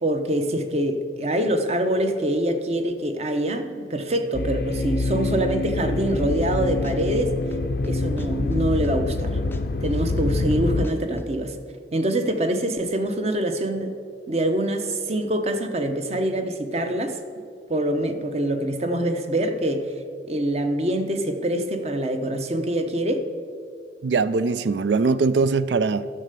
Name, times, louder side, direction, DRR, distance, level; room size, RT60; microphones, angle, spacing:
voice 1, 0.0-7.3 7.8-9.4 9.8-11.6 11.9-13.9 14.3-17.2 17.7-19.9 20.3-23.3, right 1 dB, 35° right, 0.8 m, -25 dB
sound 1, 4.3-10.9, left 2 dB, 60° left, 0.5 m, -25 dB
sound 2, 6.2-6.5 6.8-9.2 9.5-11.3, left 1 dB, 10° left, 0.5 m, -41 dB
voice 2, 24.0-26.1, right 4 dB, 80° right, 0.4 m, -21 dB
11.0 x 6.6 x 6.7 m
head